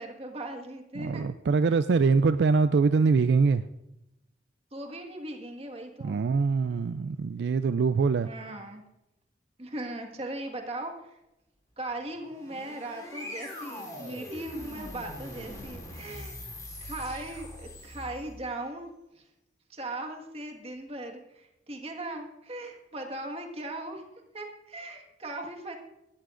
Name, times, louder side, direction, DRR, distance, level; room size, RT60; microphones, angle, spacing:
voice 1, 0.0-1.2 1.7-1.8 4.7-6.2 8.2-8.8 9.6-11.2 11.8-16.4 16.8-18.9 19.1-19.2 19.7-24.0 24.3-25.7, right 1 dB, 30° right, 2 dB, 1.6 m, -38 dB
voice 2, 1.0-3.6 6.0-8.3, right 4 dB, 70° right, 12 dB, 0.3 m, -23 dB
sound 1, 12.2-18.5, left 1 dB, 20° left, 3.8 m, -42 dB
19.5 x 13.0 x 2.5 m, 0.90 s
head